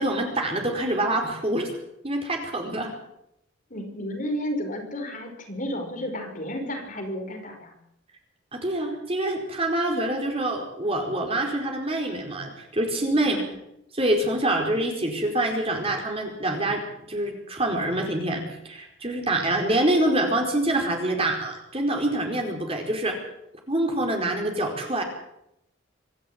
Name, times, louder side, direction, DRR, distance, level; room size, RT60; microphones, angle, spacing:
voice 1, 0.0-1.7 2.0-2.9 8.5-13.4 13.9-23.2 23.7-25.0, right 1 dB, 30° right, 2 dB, 4.7 m, -26 dB
voice 2, 3.7-7.7 13.2-13.5, equal, 40° left, 3 dB, 5.5 m, -32 dB
25.0 x 12.5 x 9.0 m, 0.80 s
head